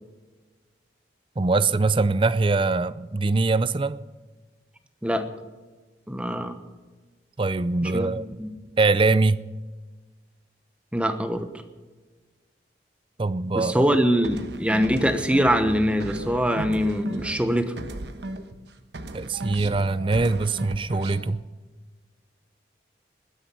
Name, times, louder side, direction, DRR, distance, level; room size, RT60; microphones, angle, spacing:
voice 1, 1.4-4.0 7.4-8.3 8.8-9.4 13.2-14.0 19.1-21.4, right 3 dB, 30° right, 16 dB, 0.5 m, -23 dB
voice 2, 6.1-6.6 7.8-8.5 10.9-11.5 13.5-17.7, equal, 5° right, 8 dB, 1.1 m, -23 dB
sound 1, 14.2-18.7 18.9-21.3, right 2 dB, 70° right, 1.2 m, -36 dB
20.0 x 10.5 x 5.7 m, 1.3 s
head